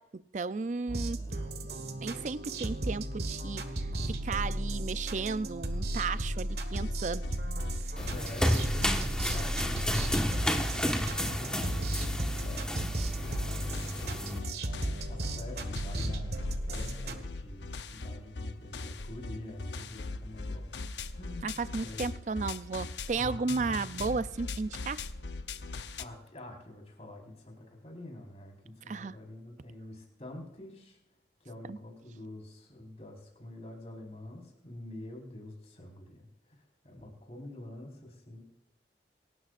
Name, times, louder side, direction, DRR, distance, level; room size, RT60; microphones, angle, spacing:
voice 1, 0.0-1.2 2.0-7.3 21.4-25.0 28.9-29.1 31.7-31.8, right 4 dB, 40° right, 15 dB, 0.4 m, -34 dB
sound 1, 0.9-17.2, right 1 dB, 65° right, 1.5 m, -35 dB
voice 2, 1.2-1.6 8.1-14.6 14.9-20.8 21.1-22.0 23.1-24.2 26.0-31.0 31.4-38.4, left 1 dB, 35° left, 0 dB, 4.5 m, -46 dB
sound 2, 6.5-26.0, left 3 dB, 80° left, 0.8 m, -40 dB
sound 3, 8.0-14.4, equal, 5° left, 1.4 m, -32 dB
27.5 x 13.0 x 2.5 m, 0.88 s
head